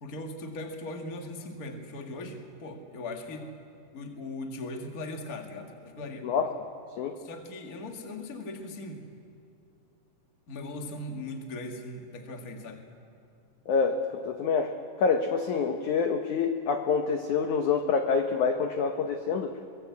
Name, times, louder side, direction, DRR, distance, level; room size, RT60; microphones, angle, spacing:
voice 1, 0.0-3.5 3.9-6.3 7.2-9.0 10.5-12.8, left 2 dB, 40° left, 3 dB, 1.2 m, -39 dB
voice 2, 13.7-14.7 15.0-19.5, left 5 dB, 80° left, 5 dB, 1.8 m, -27 dB
23.0 x 19.5 x 8.3 m, 2.5 s
omnidirectional pair, 4.9 m